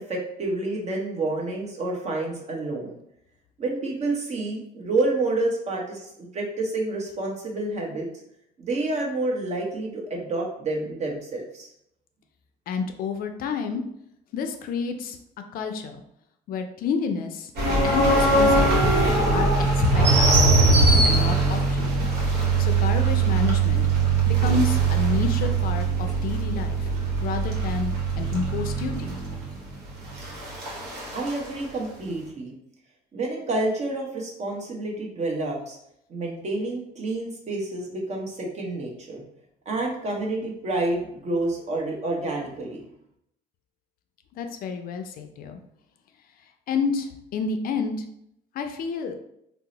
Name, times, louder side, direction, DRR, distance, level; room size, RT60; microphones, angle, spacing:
voice 1, 0.1-3.0 3.6-8.1 8.6-11.7 31.1-32.5 33.1-35.8 36.1-39.2 39.7-42.8, right 2 dB, 40° right, -1 dB, 0.9 m, -29 dB
voice 2, 12.7-13.8 14.3-15.2 15.5-16.0 16.5-17.5 17.8-19.1 19.3-20.3 21.0-22.0 22.6-23.9 24.3-26.9 27.2-29.2 44.4-45.6 46.7-48.0 48.5-49.2, left 5 dB, 60° left, 6 dB, 0.4 m, -29 dB
sound 1, 17.6-31.4, right 3 dB, 70° right, 1.0 m, -21 dB
2.8 x 2.0 x 3.8 m, 0.76 s
cardioid pair, 110°, 17 cm